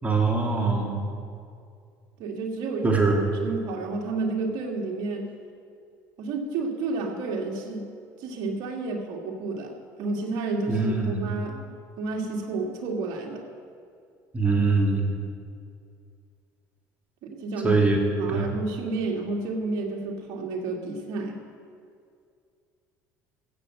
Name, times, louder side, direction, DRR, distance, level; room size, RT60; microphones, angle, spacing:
voice 1, 0.0-1.0 2.8-3.2 10.7-11.3 14.3-15.2 17.6-18.0 18.3-18.5, right 3 dB, 20° right, 0 dB, 2.9 m, -23 dB
voice 2, 2.2-5.3 6.2-7.9 8.2-11.7 12.0-13.4 17.2-17.8 18.2-21.4, right 3 dB, 70° right, 1 dB, 2.3 m, -31 dB
15.0 x 7.5 x 7.7 m, 2.3 s
supercardioid pair, 95°, 7 cm